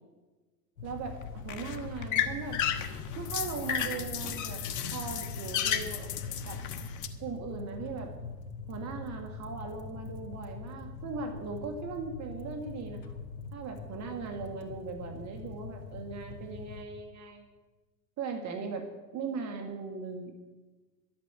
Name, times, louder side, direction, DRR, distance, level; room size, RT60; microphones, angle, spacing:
sound 1, 0.8-16.8, left 4 dB, 75° left, 2.2 m, -43 dB
voice 1, 0.8-2.6 3.1-4.6 4.9-6.1 6.4-6.6 7.2-8.1 8.7-13.0 13.5-17.4 18.2-18.8 19.1-20.3, right 4 dB, 35° right, 4 dB, 1.7 m, -39 dB
sound 2, 0.9-7.1, left 9 dB, 35° left, 1.3 m, -34 dB
12.5 x 8.6 x 8.0 m, 1.2 s
hypercardioid pair, 105°, 49 cm